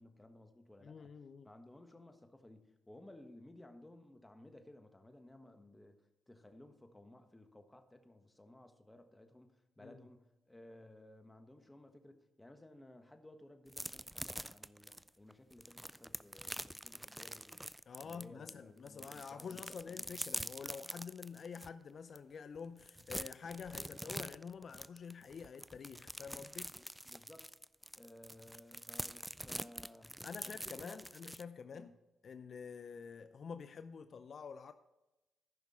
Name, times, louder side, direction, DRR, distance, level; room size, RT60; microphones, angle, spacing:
voice 1, 0.0-1.1 1.4-17.7 18.0-20.1 26.8-27.5 28.0-31.0 31.7-31.9, left 1 dB, 15° left, 1.4 m, -58 dB
voice 2, 0.8-1.5 9.8-10.0 17.9-26.7 30.2-31.9 32.2-34.7, left 6 dB, 55° left, 0.5 m, -48 dB
sound 1, 13.7-18.5 18.9-21.7 22.2-22.3 22.6-31.4, right 1 dB, 5° right, 0.3 m, -45 dB
14.0 x 5.9 x 4.3 m
supercardioid pair, 60°, 0 cm